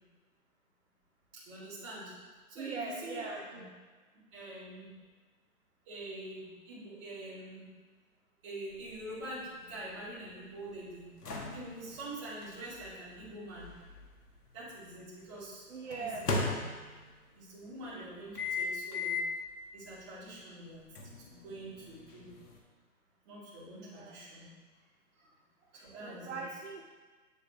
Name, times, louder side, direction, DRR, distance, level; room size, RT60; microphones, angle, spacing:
voice 1, 1.5-2.1 2.5-3.6 4.3-4.9 5.9-7.6 8.4-11.1 11.5-13.7 14.5-15.6 16.0-16.5 17.3-19.2 19.7-20.8 21.2-22.3 23.2-24.5 25.2-25.3 25.8-26.4, right 1 dB, 20° right, -9 dB, 2.4 m, -45 dB
voice 2, 2.6-3.7 15.7-16.3 23.8-24.4 25.7-26.9, right 4 dB, 50° right, 1 dB, 0.7 m, -42 dB
sound 1, 8.7-14.8 15.9-17.2 18.4-19.4 19.9-20.0 21.0-22.6, left 3 dB, 85° left, 1.6 m, -38 dB
8.8 x 7.2 x 2.8 m, 1.4 s
hypercardioid pair, 160°, 46 cm